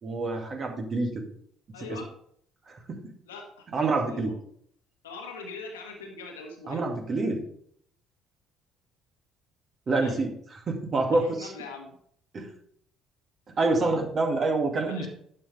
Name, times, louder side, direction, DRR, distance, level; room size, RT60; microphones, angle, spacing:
voice 1, 0.0-1.3 1.9-2.0 2.7-3.1 3.7-4.3 6.7-7.4 9.9-10.3 10.7-11.5 12.3-12.5 13.6-15.1, right 3 dB, 40° right, 3 dB, 2.1 m, -27 dB
voice 2, 1.7-2.1 3.2-3.6 4.0-4.3 5.0-6.8 10.0-10.1 11.1-12.0 14.8-15.1, left 4 dB, 80° left, 2 dB, 1.3 m, -41 dB
11.5 x 7.3 x 3.3 m, 0.65 s
figure-of-eight pair, 50°, 0 cm